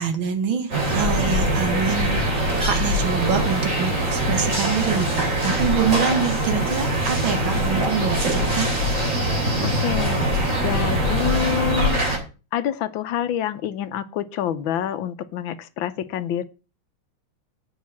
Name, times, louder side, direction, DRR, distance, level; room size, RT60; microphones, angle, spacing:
voice 1, 0.0-8.7, right 6 dB, 75° right, 2.3 m, -25 dB
sound 1, 0.7-12.2, right 1 dB, 35° right, 3.5 m, -22 dB
voice 2, 9.6-10.2 10.6-12.0 12.5-16.4, left 10 dB, 70° left, 1.5 m, -27 dB
8.4 x 6.4 x 7.0 m
omnidirectional pair, 2.3 m